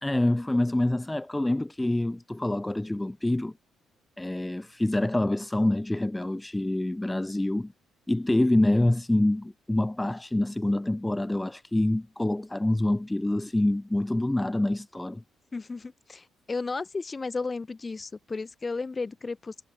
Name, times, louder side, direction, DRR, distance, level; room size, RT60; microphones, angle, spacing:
voice 1, 0.0-3.5 4.2-7.7 8.1-15.2, left 1 dB, 10° left, 1.0 m, -26 dB
voice 2, 15.5-19.5, left 4 dB, 25° left, 2.8 m, -34 dB
cardioid pair, 90°, 0 cm